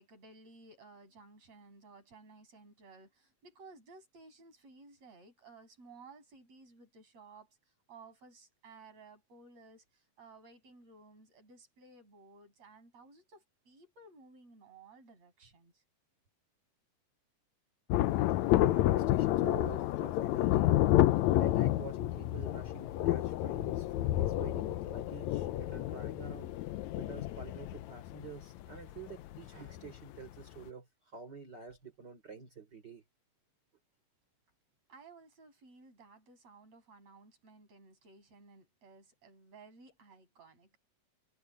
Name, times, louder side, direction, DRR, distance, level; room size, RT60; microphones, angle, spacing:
voice 1, 0.0-15.8 34.9-40.8, right 3 dB, 60° right, 8.0 m, -57 dB
Thunder, 17.9-29.9 30.2-30.3, left 14 dB, 80° left, 2.0 m, -30 dB
voice 2, 18.4-20.8 21.3-26.6 27.0-33.0, right 5 dB, 35° right, 3.6 m, -48 dB
omnidirectional pair, 3.3 m